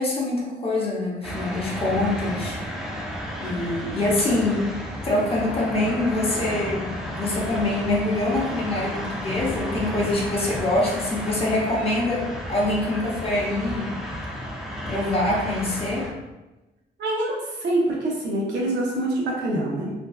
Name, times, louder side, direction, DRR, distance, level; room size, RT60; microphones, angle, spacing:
voice 1, 0.0-2.6 2.9-4.7 5.0-6.9 7.1-13.9 14.9-16.1, left 2 dB, 35° left, -4 dB, 0.7 m, -25 dB
sound 1, 1.2-16.1, equal, ahead, 0.4 m, -32 dB
voice 2, 17.0-19.9, right 1 dB, 85° right, -3 dB, 0.7 m, -25 dB
2.5 x 2.2 x 2.3 m, 1.1 s
cardioid pair, 110°, 18 cm